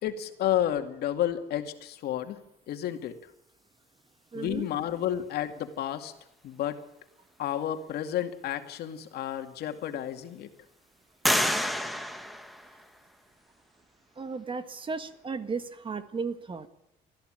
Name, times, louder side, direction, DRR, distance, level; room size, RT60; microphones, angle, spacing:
voice 1, 0.0-2.4 2.7-3.2 4.3-6.1 6.4-6.8 7.4-10.5, left 11 dB, 70° left, 7 dB, 2.3 m, -31 dB
voice 2, 4.3-4.7 14.2-16.7, right 4 dB, 30° right, 11 dB, 1.7 m, -35 dB
sound 1, 9.0-9.1 9.7-10.3 11.2-13.2, equal, ahead, 1.7 m, -30 dB
20.5 x 14.5 x 9.0 m, 0.79 s
cardioid pair, 110°, 17 cm